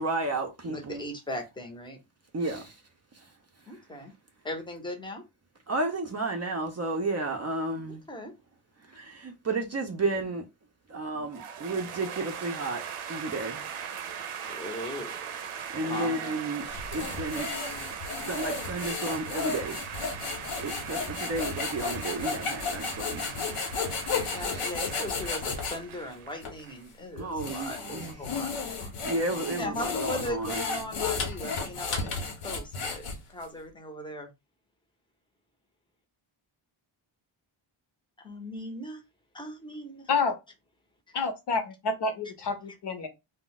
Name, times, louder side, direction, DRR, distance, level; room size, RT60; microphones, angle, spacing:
voice 1, 0.0-1.0 2.3-2.7 5.7-8.0 8.9-10.4 10.9-12.8 13.1-13.6 15.7-16.6 16.9-17.6 18.3-19.8 20.6-23.3 24.1-24.7 27.1-28.1 29.0-30.6, right 2 dB, 35° right, 0.4 m, -32 dB
voice 2, 0.6-2.0 3.7-4.1 4.4-5.2 8.1-8.3 14.5-15.5 15.8-16.3 24.3-29.0 29.5-34.3 38.2-39.0 39.3-40.1, left 1 dB, 10° left, 0.6 m, -39 dB
sound 1, 11.3-26.8, right 8 dB, 85° right, 0.6 m, -40 dB
sound 2, 16.6-25.8 26.4-26.5 27.2-33.4, left 4 dB, 90° left, 0.9 m, -33 dB
voice 3, 41.1-43.1, left 4 dB, 55° left, 0.7 m, -29 dB
2.2 x 2.1 x 3.9 m
wide cardioid pair, 135°, 49 cm